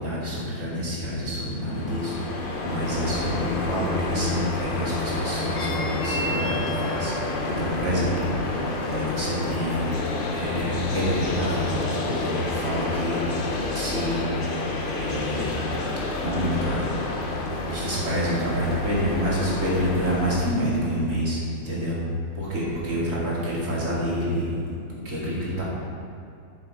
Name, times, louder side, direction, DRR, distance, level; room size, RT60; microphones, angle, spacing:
voice 1, 0.0-9.9 10.3-13.2 13.7-15.6 16.2-22.0 22.3-24.5 25.0-25.6, equal, 60° right, -7 dB, 2.7 m, -28 dB
sound 1, 1.6-20.4, left 2 dB, 45° left, 0.9 m, -29 dB
9.5 x 6.7 x 4.2 m, 2.6 s
omnidirectional pair, 1.5 m